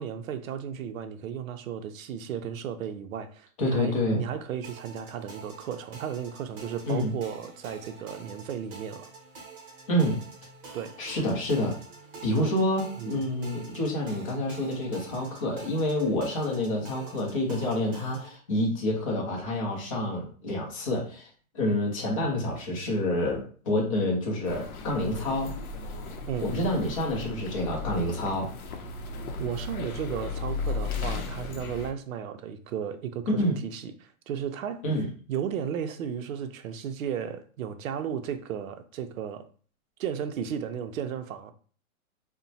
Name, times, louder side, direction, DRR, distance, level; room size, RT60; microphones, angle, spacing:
voice 1, 0.0-9.1 10.7-11.0 12.3-12.5 13.0-13.2 26.3-26.5 29.4-34.8 35.3-39.5 40.0-41.5, right 8 dB, 65° right, 0.5 m, -34 dB
voice 2, 3.6-4.2 6.8-7.1 9.9-10.2 11.0-11.7 12.2-21.3 21.5-25.6 26.4-28.5 33.4-33.6 34.8-35.1, left 1 dB, 25° left, 0.5 m, -28 dB
sound 1, 4.6-18.4, right 4 dB, 40° right, 0.8 m, -47 dB
sound 2, 24.4-31.9, left 4 dB, 90° left, 0.7 m, -35 dB
2.9 x 2.1 x 2.6 m
hypercardioid pair, 160°, 43 cm